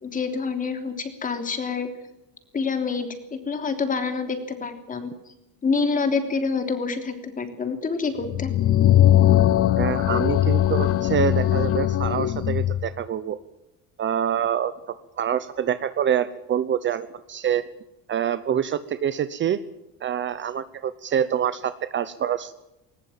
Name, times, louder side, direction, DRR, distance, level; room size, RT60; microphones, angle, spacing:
voice 1, 0.0-1.9 2.5-5.3 5.6-8.5, left 4 dB, 25° left, 7 dB, 3.2 m, -27 dB
sound 1, 8.2-12.9, left 12 dB, 40° left, 0.8 m, -20 dB
voice 2, 9.8-13.4 14.0-17.6 18.1-19.6 20.0-22.5, right 9 dB, 35° right, 14 dB, 0.9 m, -26 dB
21.0 x 20.5 x 7.4 m, 0.90 s
cardioid pair, 175°, 35 cm